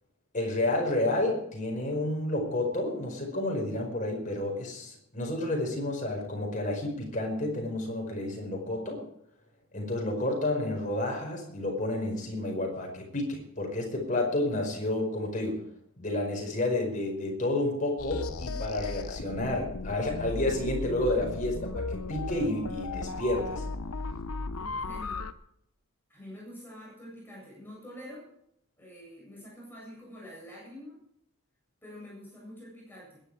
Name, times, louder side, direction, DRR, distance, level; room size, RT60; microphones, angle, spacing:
voice 1, 0.3-9.0 9.7-15.6 16.0-23.6, left 1 dB, 35° left, 1 dB, 5.1 m, -30 dB
sound 1, 18.0-25.3, left 3 dB, 85° left, 1.0 m, -36 dB
voice 2, 24.5-25.3 26.1-28.3 28.8-31.0 31.8-33.2, equal, 10° left, -5 dB, 7.8 m, -46 dB
21.5 x 11.0 x 4.9 m, 0.72 s
head